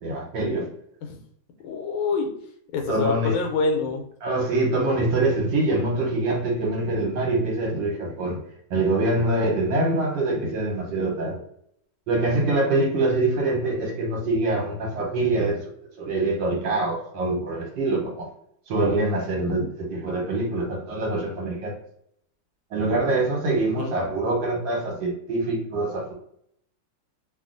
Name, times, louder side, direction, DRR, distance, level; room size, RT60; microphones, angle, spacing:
voice 1, 0.0-0.7 2.9-3.4 4.2-8.4 8.7-11.4 12.1-15.7 16.0-18.3 18.7-21.8 22.7-26.1, right 2 dB, 75° right, 1.5 m, -24 dB
voice 2, 1.6-2.3 2.7-4.0 23.8-24.0, left 4 dB, 85° left, 1.4 m, -26 dB
3.2 x 2.4 x 2.5 m
omnidirectional pair, 2.1 m